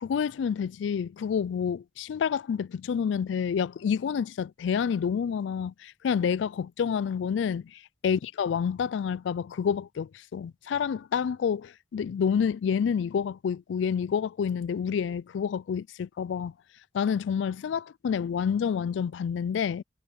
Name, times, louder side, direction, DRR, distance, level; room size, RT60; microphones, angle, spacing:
voice 1, 0.0-16.5 16.9-19.8, left 7 dB, 70° left, 0.3 m, -28 dB
head